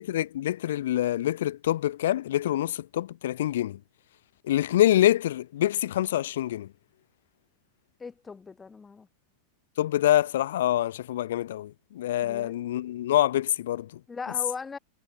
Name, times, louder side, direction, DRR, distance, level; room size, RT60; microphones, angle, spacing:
voice 1, 0.0-3.8 4.5-6.7 9.8-13.9, left 13 dB, 85° left, 0.7 m, -26 dB
voice 2, 8.0-9.1 12.2-12.6 14.1-14.8, left 5 dB, 10° left, 0.8 m, -39 dB
supercardioid pair, 170°, 0 cm